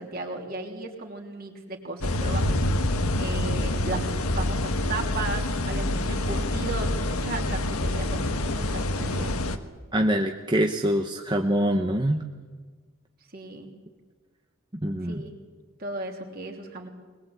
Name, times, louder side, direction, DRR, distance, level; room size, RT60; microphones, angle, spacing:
voice 1, 0.0-2.7 3.2-4.1 4.3-9.4 13.3-13.7 15.0-15.3 15.8-16.9, right 2 dB, 45° right, 2 dB, 3.1 m, -35 dB
sound 1, 2.0-9.6, left 1 dB, 85° left, 1.4 m, -26 dB
voice 2, 9.9-12.2 14.8-15.2, equal, 20° right, 3 dB, 1.0 m, -24 dB
21.5 x 21.0 x 8.3 m, 1.4 s
head